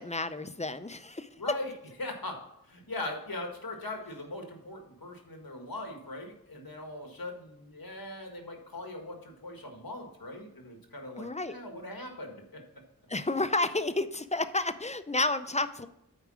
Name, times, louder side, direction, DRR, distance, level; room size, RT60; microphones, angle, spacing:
voice 1, 0.0-1.3 11.2-11.5 13.1-15.9, left 2 dB, 20° left, 11 dB, 0.5 m, -31 dB
voice 2, 1.4-1.7 2.0-2.4 2.6-12.6, left 2 dB, 75° left, 3 dB, 1.7 m, -40 dB
8.5 x 4.8 x 6.2 m, 0.79 s
wide cardioid pair, 50°, 36 cm